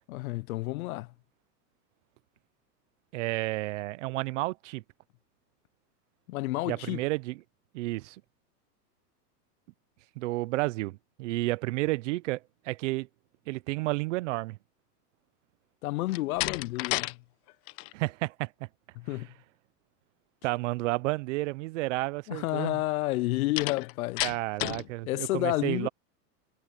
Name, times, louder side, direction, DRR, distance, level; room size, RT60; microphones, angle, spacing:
voice 1, 0.1-1.1 6.3-7.0 15.8-17.2 19.0-19.3 22.3-24.2 25.0-25.9, left 18 dB, 60° left, 0.6 m, -30 dB
voice 2, 3.1-4.8 6.7-7.4 7.7-8.2 10.2-13.1 13.5-14.6 17.9-18.5 19.1-19.2 20.4-22.8 24.2-25.9, right 21 dB, 50° right, 0.8 m, -31 dB
Slam, 16.0-17.1 17.5-17.9 23.6-24.9, left 23 dB, 35° left, 0.9 m, -32 dB
supercardioid pair, 150°, 49 cm